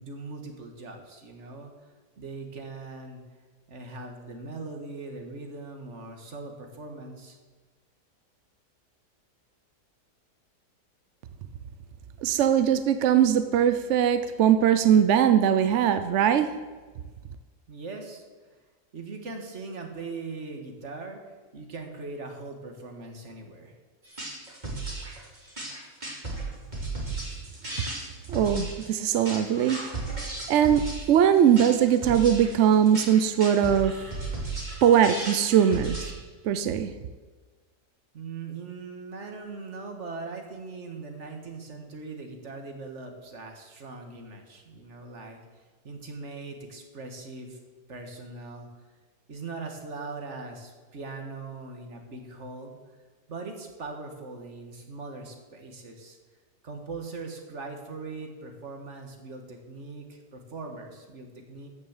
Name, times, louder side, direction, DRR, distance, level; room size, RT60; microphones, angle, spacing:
voice 1, 0.0-1.7 2.2-3.2 3.7-7.4 17.7-18.3 18.9-23.7 38.1-47.6 47.9-48.7 49.3-52.8 53.3-56.2 56.6-61.7, right 3 dB, 45° right, 4 dB, 1.9 m, -40 dB
voice 2, 12.2-16.5 27.8-27.9 28.3-29.8 30.5-33.9 34.8-36.1 36.4-36.9, right 9 dB, 65° right, 10 dB, 0.7 m, -21 dB
sound 1, 24.0-36.1, right 2 dB, 25° right, 2.7 m, -35 dB
14.0 x 6.4 x 7.2 m, 1.4 s
omnidirectional pair, 1.8 m